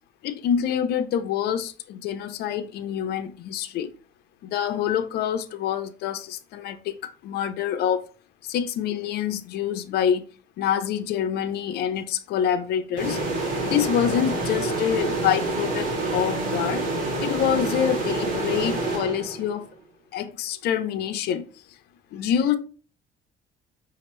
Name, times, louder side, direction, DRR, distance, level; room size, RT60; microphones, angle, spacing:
voice 1, 0.2-3.9 4.4-8.1 8.4-10.2 10.6-13.2 13.7-16.8 17.2-19.7 20.1-21.4 22.1-22.6, left 9 dB, 70° left, 0.6 m, -26 dB
sound 1, 13.0-19.6, right 2 dB, 55° right, 1.7 m, -27 dB
5.2 x 2.8 x 3.1 m
cardioid pair, 110°, 17 cm